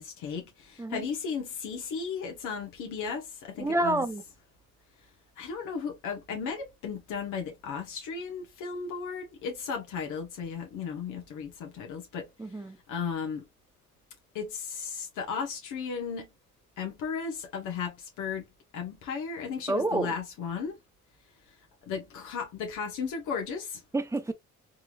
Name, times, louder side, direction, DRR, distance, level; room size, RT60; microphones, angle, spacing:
voice 1, 0.0-4.1 5.4-12.3 12.9-13.4 14.3-16.3 16.8-18.5 18.7-20.8 21.9-23.8, left 6 dB, 85° left, 0.8 m, -35 dB
voice 2, 3.6-4.2 12.4-12.8 19.7-20.1 23.9-24.3, right 2 dB, 10° right, 0.6 m, -28 dB
3.7 x 3.1 x 2.2 m
cardioid pair, 90°, 30 cm